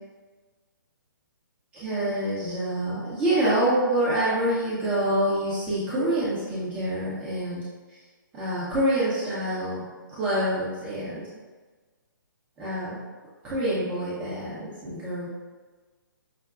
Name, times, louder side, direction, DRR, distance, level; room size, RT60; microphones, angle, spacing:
voice 1, 1.8-7.6 8.3-9.8 10.2-11.2 12.6-12.9 13.4-15.3, right 1 dB, 15° right, -11 dB, 0.8 m, -26 dB
5.6 x 2.1 x 2.4 m, 1.4 s
hypercardioid pair, 145°, 12 cm